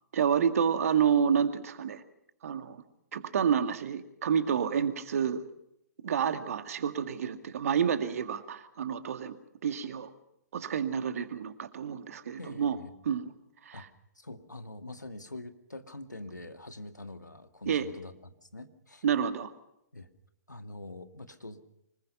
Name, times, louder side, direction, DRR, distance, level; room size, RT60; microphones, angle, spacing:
voice 1, 0.1-2.0 2.4-2.8 3.1-5.4 6.0-9.3 9.6-10.1 10.5-12.8 13.0-13.3 13.6-13.9 17.7-17.9 19.0-19.5, right 7 dB, 55° right, 9 dB, 2.0 m, -29 dB
voice 2, 12.4-12.9 13.7-13.9 14.2-19.0 19.9-20.1 20.5-21.6, left 2 dB, 90° left, 8 dB, 2.0 m, -44 dB
25.5 x 21.0 x 5.5 m, 0.81 s
figure-of-eight pair, 125°, 9 cm